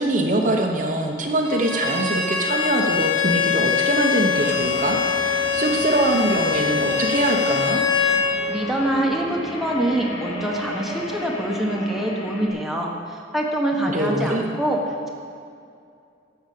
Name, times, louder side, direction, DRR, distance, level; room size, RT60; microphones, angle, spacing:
voice 1, 0.0-7.8 13.9-14.5, right 1 dB, 45° right, 1 dB, 1.0 m, -23 dB
Bowed string instrument, 1.4-8.3, left 6 dB, 50° left, 2.6 m, -23 dB
sound 1, 4.3-12.5, equal, 75° left, 2.4 m, -34 dB
voice 2, 8.5-15.1, right 1 dB, ahead, -2 dB, 1.3 m, -25 dB
11.5 x 7.2 x 8.5 m, 2.4 s
head